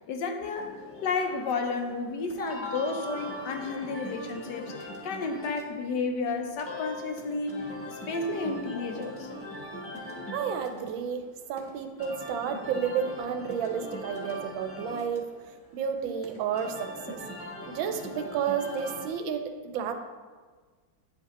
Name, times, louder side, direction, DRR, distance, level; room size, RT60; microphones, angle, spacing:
voice 1, 0.1-9.3, left 4 dB, 70° left, 4 dB, 1.2 m, -32 dB
sound 1, 0.6-19.1, equal, 15° left, 0.5 m, -41 dB
voice 2, 10.3-15.2 15.7-16.7 17.1-17.2 17.7-19.9, right 7 dB, 90° right, 6 dB, 1.4 m, -31 dB
9.4 x 5.1 x 3.0 m, 1.5 s
omnidirectional pair, 2.1 m